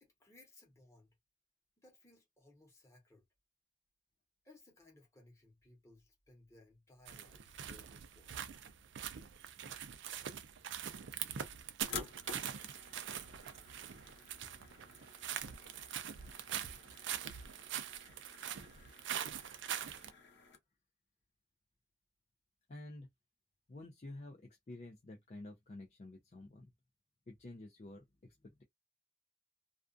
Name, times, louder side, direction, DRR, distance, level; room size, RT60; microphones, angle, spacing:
voice 1, 0.0-1.2 1.8-3.2 4.4-8.3 18.5-18.6 19.0-19.2, left 2 dB, 15° left, 0.9 m, -63 dB
sound 1, 7.1-20.1, right 9 dB, 60° right, 0.4 m, -43 dB
sound 2, 11.8-20.6, left 5 dB, 55° left, 0.8 m, -52 dB
voice 2, 22.7-23.1 23.7-26.7 27.3-28.6, left 2 dB, 35° left, 0.4 m, -50 dB
2.4 x 2.3 x 2.4 m
head